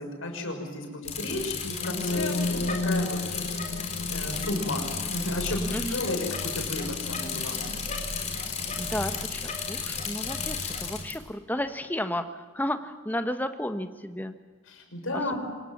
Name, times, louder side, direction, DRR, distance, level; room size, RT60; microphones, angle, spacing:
voice 1, 0.0-3.2 3.5-3.8 4.1-7.8 14.7-15.4, left 1 dB, 80° left, 3 dB, 6.3 m, -33 dB
Bicycle, 1.0-11.1, left 5 dB, 35° left, 4.0 m, -33 dB
sound 1, 1.8-9.6, left 2 dB, 55° left, 1.0 m, -34 dB
voice 2, 8.7-14.3 15.1-15.4, left 1 dB, 10° left, 8 dB, 1.3 m, -33 dB
25.5 x 21.5 x 7.4 m, 1.5 s
head